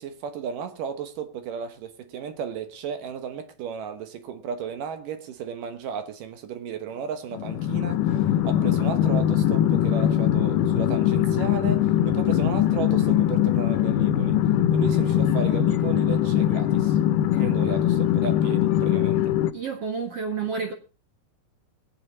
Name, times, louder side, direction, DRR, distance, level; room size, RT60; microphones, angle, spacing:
voice 1, 0.0-14.4 14.7-17.0 17.3-19.3, right 7 dB, 70° right, 2.7 m, -34 dB
sound 1, 7.3-19.5, left 11 dB, 75° left, 2.2 m, -22 dB
voice 2, 19.5-20.7, right 5 dB, 55° right, 2.0 m, -29 dB
22.5 x 8.6 x 4.1 m
omnidirectional pair, 4.3 m